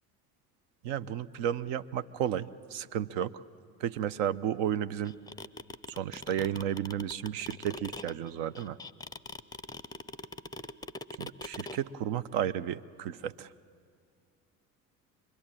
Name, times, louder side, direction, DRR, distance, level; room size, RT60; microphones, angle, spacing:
voice 1, 0.8-3.4 3.8-5.1 5.9-8.8 11.2-13.5, right 10 dB, 60° right, 15 dB, 0.8 m, -33 dB
sound 1, 5.0-11.8, left 2 dB, 10° left, 0.6 m, -41 dB
25.0 x 22.0 x 8.9 m, 2.4 s
hypercardioid pair, 60°, 47 cm